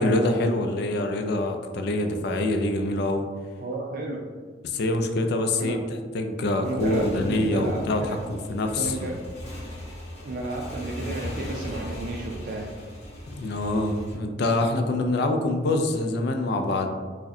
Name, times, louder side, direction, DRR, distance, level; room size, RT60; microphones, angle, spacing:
voice 1, 0.0-3.3 4.6-5.8 6.1-8.2 8.5-9.1 13.4-16.9, left 2 dB, 60° left, 5 dB, 0.4 m, -25 dB
voice 2, 3.6-4.3 5.6-5.8 6.6-8.2 8.7-9.1 10.2-12.7, right 2 dB, 50° right, 0 dB, 0.4 m, -32 dB
Motorcycle / Engine, 6.5-14.1, equal, 35° left, 0.9 m, -38 dB
4.7 x 2.1 x 2.7 m, 1.5 s
head